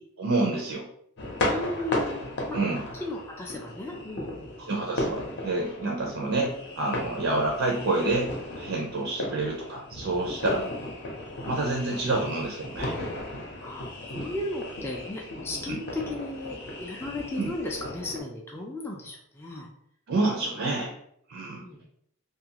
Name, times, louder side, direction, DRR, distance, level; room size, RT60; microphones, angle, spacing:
voice 1, 0.2-0.9 2.5-2.9 4.6-10.7 11.5-13.0 15.7-15.8 17.4-17.5 20.1-21.0 21.3-21.6, right 2 dB, 60° right, 0 dB, 0.5 m, -28 dB
sound 1, 1.2-18.2, left 1 dB, 50° left, 0.6 m, -35 dB
voice 2, 1.5-2.6 3.0-4.5 5.8-6.0 9.0-9.2 10.5-10.7 13.6-19.7 20.6-20.7 21.5-21.8, left 2 dB, 10° left, -1 dB, 0.3 m, -36 dB
2.6 x 2.4 x 2.8 m, 0.69 s
head